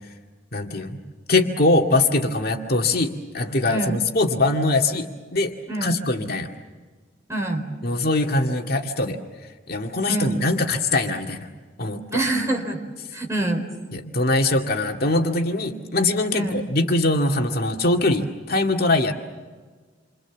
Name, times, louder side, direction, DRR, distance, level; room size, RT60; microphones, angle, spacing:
voice 1, 0.5-1.0 1.3-5.5 5.8-6.5 7.8-9.2 9.7-11.5 11.8-12.0 13.9-19.1, left 2 dB, 55° left, 2 dB, 2.2 m, -22 dB
voice 2, 3.7-4.0 5.7-6.0 7.3-7.6 10.1-10.4 12.1-12.8 13.1-13.7 16.3-16.6, right 2 dB, 15° right, 2 dB, 4.4 m, -25 dB
28.5 x 25.5 x 7.3 m, 1.4 s
head